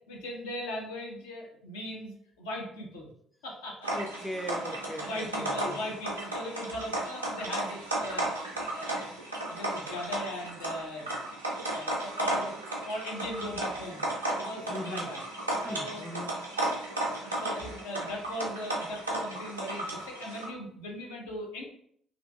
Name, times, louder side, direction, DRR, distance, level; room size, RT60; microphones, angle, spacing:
voice 1, 0.1-3.1 3.4-4.0 4.3-4.5 5.0-9.0 9.5-11.3 11.7-12.5 12.8-14.1 14.4-15.2 15.6-16.0 17.1-21.6, left 1 dB, 70° left, -1 dB, 0.5 m, -39 dB
sound 1, 3.8-20.5, right 1 dB, 85° right, 0.4 m, -34 dB
voice 2, 3.9-5.8 14.7-15.1 15.6-16.3 16.6-16.7, equal, ahead, 4 dB, 0.3 m, -39 dB
2.5 x 2.5 x 2.2 m, 0.65 s
figure-of-eight pair, 50°, 0 cm